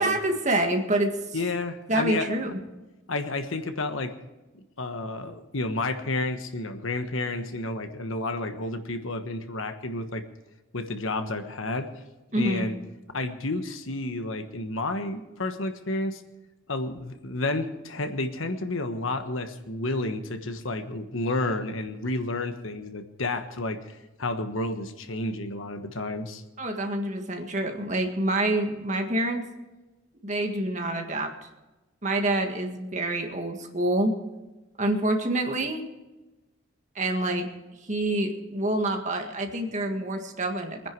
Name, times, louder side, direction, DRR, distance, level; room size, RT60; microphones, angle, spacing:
voice 1, 0.0-1.4 1.9-2.6 12.3-12.7 26.6-29.5 30.2-31.3 32.0-34.1 34.8-35.8 37.0-37.5 37.9-40.9, right 1 dB, 35° right, 3 dB, 1.8 m, -27 dB
voice 2, 1.3-2.3 3.1-4.1 4.5-10.2 10.7-11.9 12.3-12.7 13.1-16.2 16.7-26.4, left 2 dB, 75° left, 8 dB, 1.3 m, -31 dB
23.0 x 10.5 x 4.7 m, 1.1 s
head